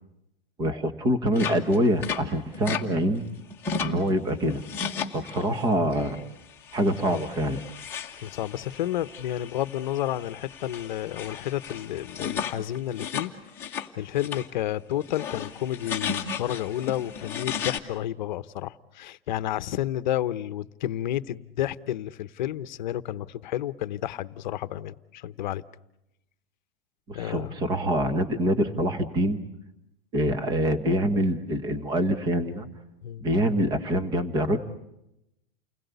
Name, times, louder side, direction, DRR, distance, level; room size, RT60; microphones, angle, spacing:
voice 1, 0.6-3.2 3.8-4.6 5.1-6.2 6.7-7.6 27.1-29.4 30.1-32.7 33.2-34.6, equal, 15° right, 10 dB, 1.3 m, -25 dB
sound 1, 1.3-2.8 3.2-4.1 4.5-5.6 5.9-6.2 6.6-13.9 14.1-14.5 14.9-17.8, left 6 dB, 10° left, 1.4 m, -35 dB
voice 2, 8.2-13.3 13.6-25.6 27.1-27.7 33.0-33.3, left 12 dB, 50° left, 15 dB, 1.0 m, -31 dB
29.5 x 21.0 x 8.2 m, 0.86 s
supercardioid pair, 180°, 29 cm